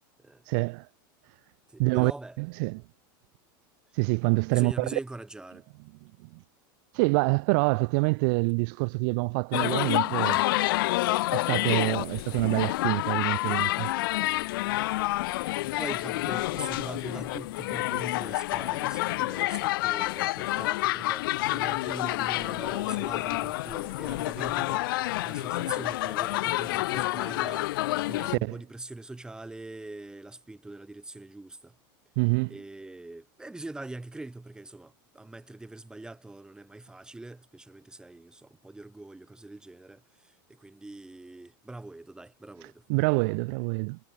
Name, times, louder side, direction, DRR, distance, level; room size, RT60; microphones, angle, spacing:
voice 1, 0.5-0.9 1.8-2.1 2.4-2.8 3.9-4.9 6.9-10.4 11.3-13.9 28.3-28.6 32.2-32.5 42.9-44.0, right 32 dB, 60° right, 1.4 m, -26 dB
voice 2, 1.7-2.4 4.5-5.7 15.7-31.7 32.5-42.8, right 2 dB, 5° right, 4.4 m, -43 dB
sound 1, 9.5-28.4, left 18 dB, 75° left, 1.1 m, -28 dB
supercardioid pair, 135°, 12 cm